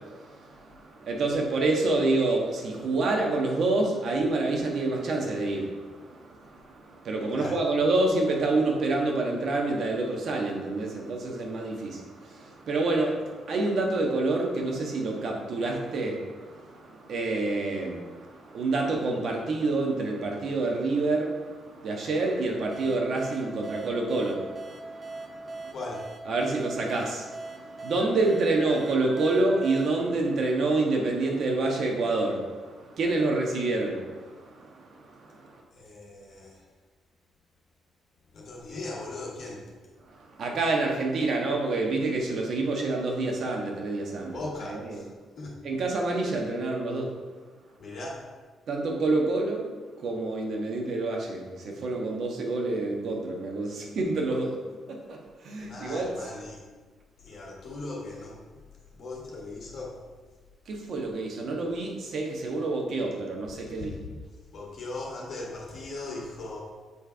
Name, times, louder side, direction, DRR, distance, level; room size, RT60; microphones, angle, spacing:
voice 1, 0.0-25.8 26.2-35.6 40.0-45.0 45.6-47.1 48.7-54.6 54.9-56.1 60.7-64.0, right 2 dB, 60° right, 0 dB, 1.3 m, -28 dB
sound 1, 20.4-20.9 22.7-23.1 23.3-23.4 23.7-24.2 25.0-25.1 25.3-25.4 26.9-27.0 27.9-30.2 30.6-30.7 31.2-31.3 31.7-31.8, right 3 dB, 80° right, 1.8 m, -47 dB
sound 2, 22.7-31.2, right 2 dB, 35° right, 0.8 m, -41 dB
voice 2, 25.7-26.1 35.7-36.6 38.3-39.7 44.3-45.1 45.4-45.6 47.8-48.2 55.6-56.6 57.2-58.6 58.9-60.0 63.8-64.2 64.5-66.6, left 2 dB, 60° left, -3 dB, 1.6 m, -38 dB
7.2 x 3.4 x 4.5 m, 1.4 s
cardioid pair, 90°, 0 cm